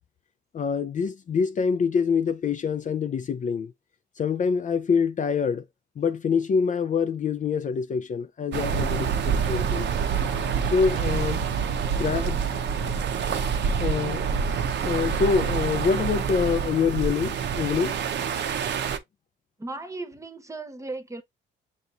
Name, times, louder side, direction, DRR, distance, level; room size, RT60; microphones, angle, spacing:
voice 1, 0.5-3.7 4.2-5.6 6.0-9.9 10.7-11.4 12.0-12.6 13.8-14.4 14.8-18.0, left 6 dB, 40° left, 0.4 m, -25 dB
sound 1, 8.5-19.0, right 6 dB, 60° right, 0.7 m, -27 dB
sound 2, 10.0-15.8, left 8 dB, 75° left, 1.0 m, -48 dB
voice 2, 19.6-21.2, right 2 dB, 15° right, 0.9 m, -36 dB
6.8 x 3.0 x 2.4 m
cardioid pair, 90°, 20 cm